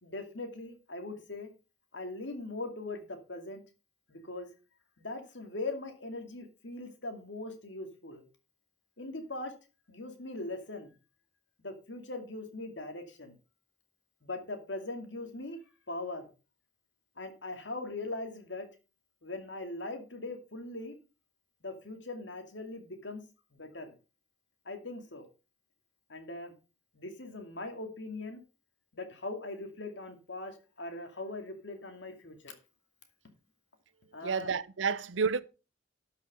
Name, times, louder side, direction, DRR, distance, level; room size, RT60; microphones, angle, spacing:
voice 1, 0.0-1.5 1.9-3.6 4.1-4.5 5.0-8.2 9.0-9.5 9.9-10.9 11.6-13.4 14.2-15.6 15.9-16.3 17.2-18.7 19.2-21.0 21.6-23.2 23.5-23.9 24.7-25.2 26.1-26.5 26.9-28.4 28.9-32.5 34.1-34.5, left 2 dB, 75° left, 2.4 m, -40 dB
voice 2, 34.2-35.4, right 5 dB, 90° right, 0.7 m, -30 dB
12.5 x 5.7 x 5.3 m
head